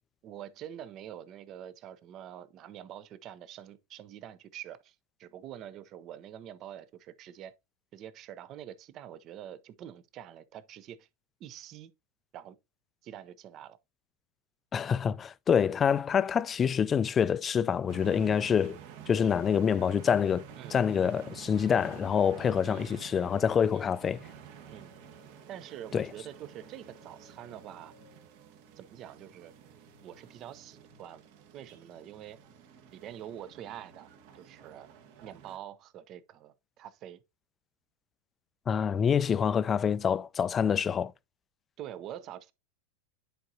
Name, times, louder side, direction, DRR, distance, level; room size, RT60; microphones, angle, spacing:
voice 1, 0.2-7.6 7.9-11.1 11.4-11.9 12.3-12.6 13.0-13.8 20.6-20.8 22.6-22.9 23.7-23.9 24.7-24.9 25.5-27.9 28.8-29.5 30.0-31.2 31.5-32.4 32.9-34.9 35.2-37.2 41.8-42.5, right 10 dB, 40° right, 0.7 m, -46 dB
voice 2, 14.7-18.8 19.1-20.4 20.7-24.2 25.9-26.1 38.7-41.1, left 7 dB, 25° left, 0.4 m, -26 dB
sound 1, 17.9-35.6, right 8 dB, 60° right, 1.3 m, -50 dB
10.0 x 4.8 x 2.7 m
hypercardioid pair, 95°, 0 cm